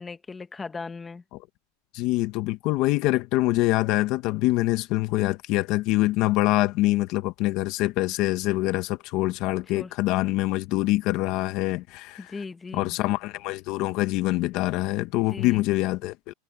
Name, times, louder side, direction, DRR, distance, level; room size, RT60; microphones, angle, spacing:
voice 1, 0.0-1.2 9.7-9.9 12.2-13.0 15.3-15.6, left 4 dB, 10° left, 1.4 m, -37 dB
voice 2, 1.9-12.3 12.7-16.3, left 18 dB, 45° left, 1.0 m, -25 dB
supercardioid pair, 150°, 0 cm